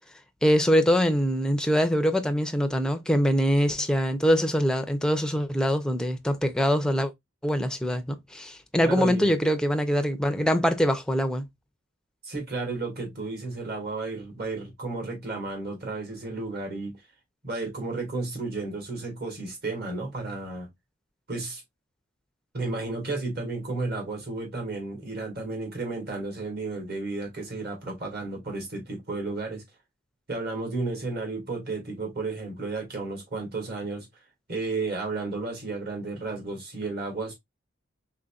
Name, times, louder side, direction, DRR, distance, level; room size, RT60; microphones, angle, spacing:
voice 1, 0.4-7.1 7.4-11.5, equal, 5° left, 0.5 m, -23 dB
voice 2, 8.8-9.3 12.2-17.0 17.4-20.7 21.3-21.6 22.5-29.6 30.3-34.1 34.5-37.3, right 3 dB, 50° right, 1.8 m, -33 dB
3.9 x 3.5 x 2.3 m
head